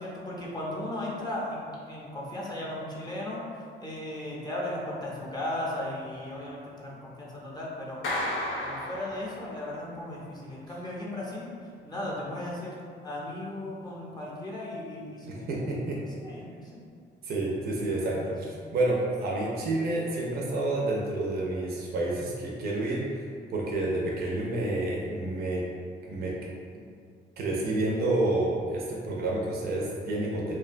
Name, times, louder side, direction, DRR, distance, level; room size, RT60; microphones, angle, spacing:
voice 1, 0.0-8.0 8.6-11.5 11.8-12.7 13.0-16.8 17.6-18.3, left 1 dB, 20° left, -6 dB, 0.5 m, -36 dB
Clapping, 8.0-9.8, left 1 dB, 80° left, 0.5 m, -33 dB
voice 2, 15.2-16.0 17.2-25.6 26.1-26.3 27.4-30.6, right 2 dB, 50° right, -3 dB, 0.5 m, -29 dB
2.7 x 2.1 x 2.5 m, 2.2 s
cardioid pair, 90°, 20 cm